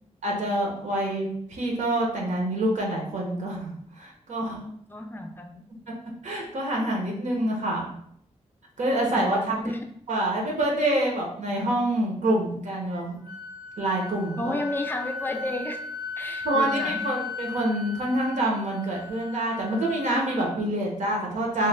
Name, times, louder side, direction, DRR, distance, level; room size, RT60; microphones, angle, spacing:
voice 1, 0.2-4.6 6.2-7.9 8.8-9.6 10.1-13.2 13.8-14.6 16.4-21.7, right 1 dB, 80° right, -1 dB, 0.8 m, -26 dB
voice 2, 4.4-5.6 9.1-9.8 14.4-15.8 16.2-17.0, left 1 dB, 15° left, 4 dB, 0.4 m, -32 dB
Wind instrument woodwind instrument, 12.9-20.6, left 5 dB, 40° right, 0.5 m, -36 dB
3.0 x 2.1 x 3.3 m, 0.67 s
wide cardioid pair, 115°, 12 cm